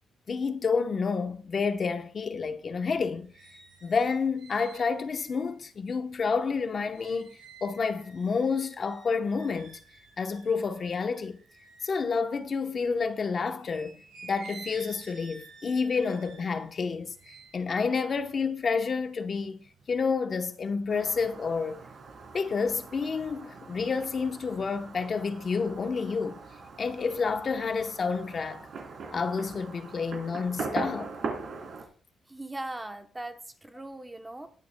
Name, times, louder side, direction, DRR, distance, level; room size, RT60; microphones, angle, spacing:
voice 1, 0.3-3.3 3.8-9.8 10.2-11.4 11.8-14.0 14.2-19.6 19.9-21.8 22.3-26.4 26.8-28.7 29.1-31.1, left 5 dB, 35° left, 0.9 m, -29 dB
sound 1, 2.9-13.0 13.5-19.1 19.4-20.0, right 4 dB, 70° right, 4.2 m, -52 dB
Fireworks, 20.9-31.8, right 4 dB, 50° right, 3.3 m, -41 dB
voice 2, 32.3-34.5, right 2 dB, 10° right, 0.9 m, -39 dB
20.5 x 10.0 x 2.2 m
cardioid pair, 150°, 0 cm